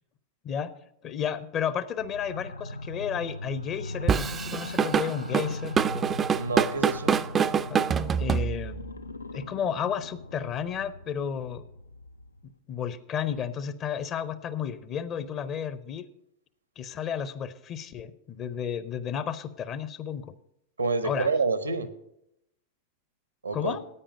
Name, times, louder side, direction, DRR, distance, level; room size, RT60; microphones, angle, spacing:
voice 1, 1.0-5.8 7.7-7.8 8.2-8.8 9.3-11.6 12.4-16.0 16.8-20.3 21.0-21.3 23.5-23.8, left 8 dB, 30° left, 15 dB, 0.6 m, -32 dB
sound 1, 2.0-12.5, left 2 dB, 80° left, 0.3 m, -39 dB
Drum kit / Drum, 4.1-8.9, right 7 dB, 20° right, 0.4 m, -25 dB
voice 2, 6.3-7.2 20.8-21.9 23.4-23.8, right 4 dB, 80° right, 13 dB, 0.8 m, -28 dB
9.9 x 8.8 x 5.1 m, 0.78 s
figure-of-eight pair, 90°, 0 cm